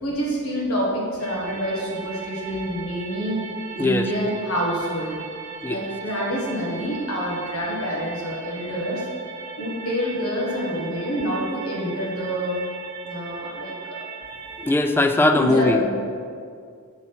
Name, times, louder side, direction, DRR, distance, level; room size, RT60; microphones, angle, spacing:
voice 1, 0.0-3.4 3.8-5.2 5.7-9.0 9.6-12.6 13.0-14.0 15.3-15.9, equal, 80° left, -4 dB, 1.6 m, -27 dB
sound 1, 1.2-14.7, right 5 dB, 35° right, 1.1 m, -38 dB
voice 2, 14.6-15.8, left 2 dB, 10° left, 7 dB, 0.3 m, -19 dB
6.0 x 4.1 x 5.5 m, 2.2 s
head